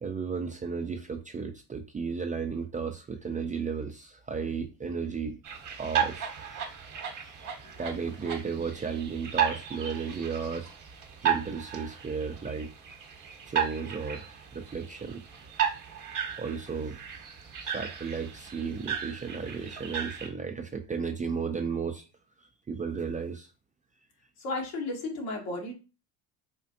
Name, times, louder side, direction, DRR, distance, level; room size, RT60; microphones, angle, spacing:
voice 1, 0.0-5.4 5.8-6.7 7.6-10.7 11.2-12.7 13.5-15.4 16.4-17.0 17.6-22.0 22.7-23.5, right 5 dB, 20° right, 5 dB, 0.4 m, -34 dB
sound 1, 5.4-20.3, right 8 dB, 45° right, 1.0 m, -34 dB
voice 2, 24.4-25.7, left 2 dB, 75° left, 1 dB, 1.3 m, -33 dB
4.3 x 2.4 x 2.6 m, 0.31 s
supercardioid pair, 80°, 45 cm